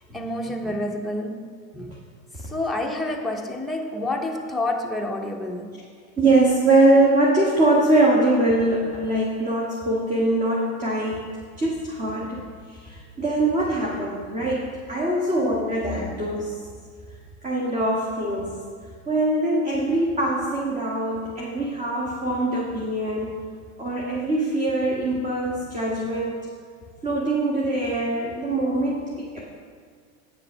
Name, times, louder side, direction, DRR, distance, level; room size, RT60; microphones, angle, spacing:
voice 1, 0.1-2.0 2.4-5.8, left 1 dB, ahead, 0.7 m, -29 dB
voice 2, 6.2-11.3 11.6-12.4 12.7-16.6 17.4-18.6 19.1-23.3 23.8-26.5 27.0-29.4, right 2 dB, 20° right, 1.4 m, -23 dB
8.8 x 7.3 x 5.3 m
supercardioid pair, 120°, 41 cm